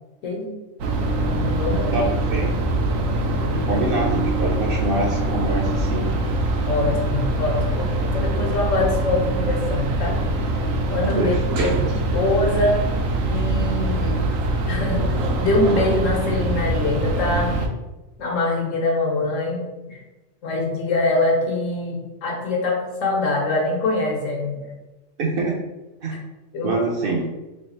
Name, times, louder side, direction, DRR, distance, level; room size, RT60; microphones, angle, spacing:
sound 1, 0.8-17.7, right 1 dB, 85° right, 1.0 m, -23 dB
voice 1, 1.2-2.1 3.3-3.9 6.7-10.2 10.9-11.3 11.6-11.7 12.1-12.9 13.3-14.2 14.7-17.5 18.2-19.6 19.9-20.0 20.4-24.7 26.5-26.7, left 2 dB, 75° left, 0 dB, 1.2 m, -24 dB
voice 2, 1.9-2.5 3.6-6.1 11.2-11.8 25.2-25.5 26.0-26.2 26.6-27.3, right 2 dB, 55° right, -1 dB, 0.7 m, -25 dB
3.3 x 2.4 x 4.1 m, 1.0 s
omnidirectional pair, 1.3 m